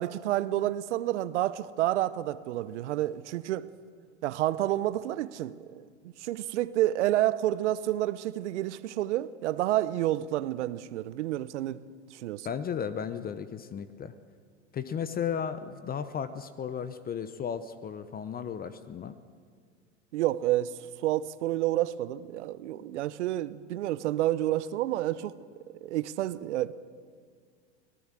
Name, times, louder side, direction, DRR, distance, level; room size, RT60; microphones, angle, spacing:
voice 1, 0.0-3.7 4.2-11.8 12.1-12.5 20.1-20.7 21.0-25.3 25.8-26.7, right 14 dB, 75° right, 0.9 m, -29 dB
voice 2, 12.4-14.1 14.7-19.2 22.7-22.8, left 7 dB, 25° left, 0.8 m, -35 dB
24.0 x 17.5 x 7.5 m
hypercardioid pair, 105°, 35 cm